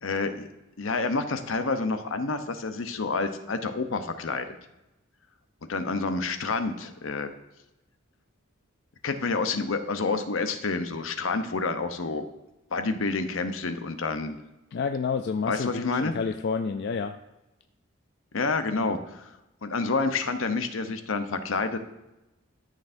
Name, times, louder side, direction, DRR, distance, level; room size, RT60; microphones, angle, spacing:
voice 1, 0.0-0.5 0.8-4.5 5.7-7.3 9.0-12.3 12.7-14.4 15.5-16.1 18.3-19.3 19.6-21.8, left 3 dB, 70° left, 9 dB, 0.8 m, -28 dB
voice 2, 14.7-17.2 18.7-19.0, left 5 dB, 55° left, 6 dB, 0.4 m, -29 dB
13.0 x 6.5 x 2.6 m, 0.97 s
head